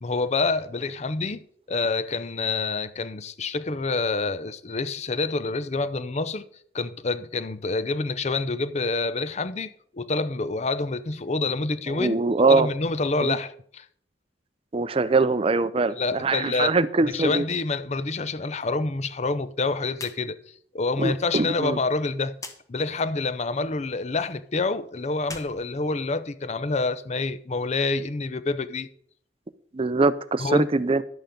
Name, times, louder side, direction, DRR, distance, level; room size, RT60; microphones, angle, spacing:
voice 1, 0.0-6.4 6.7-12.2 12.5-13.9 16.0-16.7 17.0-20.4 20.7-22.4 22.7-28.9 30.4-30.7, left 3 dB, 40° left, 0.6 m, -27 dB
voice 2, 11.9-12.7 13.2-13.4 14.7-17.4 21.0-21.8 29.7-31.0, right 3 dB, 30° right, 0.5 m, -22 dB
sound 1, 19.9-20.2 20.5-20.6 22.3-22.6 25.2-26.5, left 3 dB, 20° left, 1.1 m, -41 dB
11.5 x 8.1 x 5.2 m
head